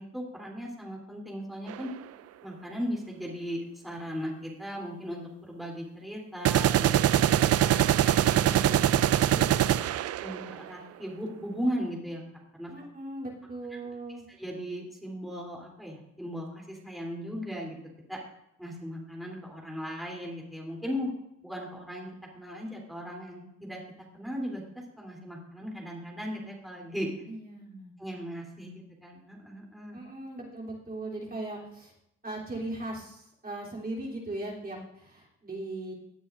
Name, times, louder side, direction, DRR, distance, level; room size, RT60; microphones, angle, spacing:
voice 1, 0.0-1.9 2.4-6.9 7.4-9.6 10.2-12.2 12.5-12.7 14.4-17.8 18.1-18.2 18.6-21.1 21.4-23.8 24.1-24.6 25.0-27.1 28.0-30.0, equal, ahead, -2 dB, 3.1 m, -37 dB
sound 1, 1.7-1.8 6.4-10.6, right 11 dB, 55° right, 0.5 m, -23 dB
voice 2, 12.7-14.3 27.3-27.9 29.9-31.9 32.2-35.9, right 2 dB, 30° right, -3 dB, 3.2 m, -38 dB
17.0 x 8.9 x 2.5 m, 0.82 s
cardioid pair, 90°, 30 cm